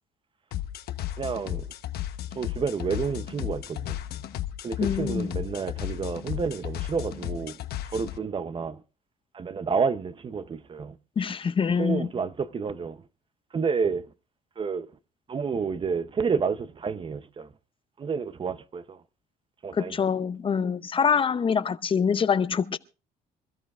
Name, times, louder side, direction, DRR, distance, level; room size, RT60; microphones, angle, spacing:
sound 1, 0.5-8.2, left 12 dB, 70° left, 1.0 m, -34 dB
voice 1, 1.2-1.7 2.3-4.0 4.6-7.6 7.9-8.8 9.3-11.0 11.8-13.0 13.5-14.1 14.6-14.9 15.3-17.5 18.0-19.0 19.6-19.9, right 5 dB, 30° right, 0.6 m, -30 dB
voice 2, 4.8-5.4 11.2-12.1 19.7-22.8, left 6 dB, 30° left, 0.7 m, -25 dB
26.5 x 13.5 x 2.4 m
cardioid pair, 110°, 17 cm